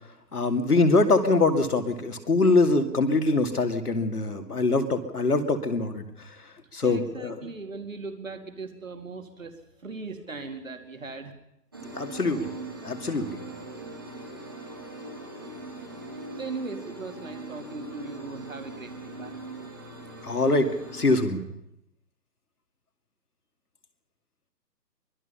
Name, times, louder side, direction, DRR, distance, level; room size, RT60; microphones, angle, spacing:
voice 1, 0.3-6.0 6.7-7.4 11.9-12.5 12.8-13.4 20.2-21.4, left 3 dB, 60° left, 6 dB, 2.6 m, -23 dB
voice 2, 6.8-9.5 9.8-11.3 16.2-19.4, right 3 dB, 50° right, 6 dB, 2.5 m, -38 dB
sound 1, 11.7-21.3, right 2 dB, 15° right, 1.6 m, -41 dB
24.0 x 19.5 x 5.6 m, 0.82 s
figure-of-eight pair, 175°, 50 cm